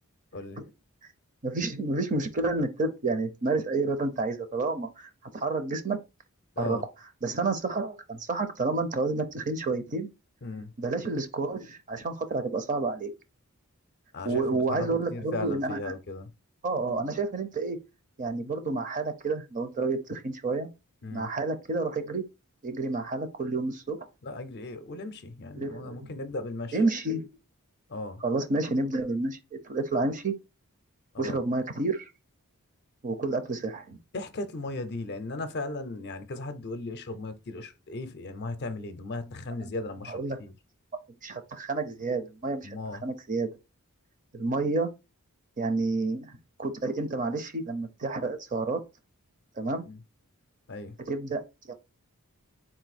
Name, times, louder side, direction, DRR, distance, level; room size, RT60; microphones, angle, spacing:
voice 1, 0.3-0.6 6.6-6.9 10.4-10.7 14.1-16.3 21.0-21.3 24.2-26.8 27.9-28.2 31.1-31.4 34.1-40.5 42.6-43.0 49.8-50.0 50.7-51.0, left 2 dB, 50° left, 0.5 m, -37 dB
voice 2, 1.4-6.0 6.6-6.8 7.2-10.1 10.8-13.1 14.2-15.9 16.6-17.8 18.2-20.7 21.1-22.2 22.6-24.0 25.6-26.1 26.7-27.3 28.2-30.3 31.2-32.1 33.0-34.0 40.1-40.4 41.2-42.8 43.0-43.5 44.3-44.9 45.6-46.3 46.6-48.8 49.6-49.9 51.1-51.4 51.7-51.8, right 3 dB, 35° right, 0.6 m, -29 dB
3.8 x 2.6 x 4.1 m
head